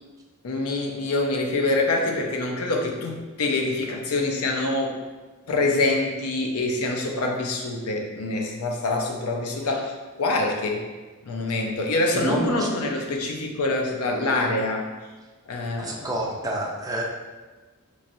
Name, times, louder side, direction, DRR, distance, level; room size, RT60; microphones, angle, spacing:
voice 1, 0.4-5.0 5.5-10.9 11.3-14.9 15.5-16.1, left 2 dB, 80° left, 2 dB, 0.6 m, -25 dB
voice 2, 12.1-12.7 15.8-17.0, right 1 dB, 15° right, -1 dB, 0.5 m, -28 dB
4.1 x 3.1 x 2.6 m, 1.3 s
head